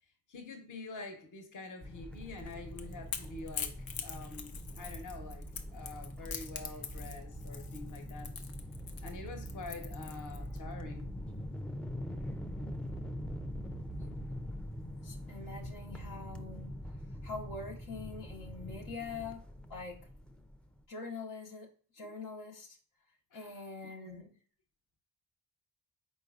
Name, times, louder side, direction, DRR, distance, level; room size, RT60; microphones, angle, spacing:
voice 1, 0.3-3.7 4.0-5.4 5.7-8.3 9.0-11.1 22.0-22.1 23.3-23.5 24.0-24.2, left 3 dB, 55° left, 4 dB, 1.0 m, -46 dB
sound 1, 1.8-20.8, equal, 5° left, 0.3 m, -43 dB
Crackle / Crack, 2.4-10.6, left 7 dB, 70° left, 0.6 m, -43 dB
voice 2, 15.0-16.8 17.2-19.4 19.7-20.1 20.9-21.7 21.9-22.8 23.3-24.4, left 4 dB, 85° left, -1 dB, 1.0 m, -44 dB
4.3 x 3.9 x 2.4 m, 0.43 s
cardioid pair, 80°, 37 cm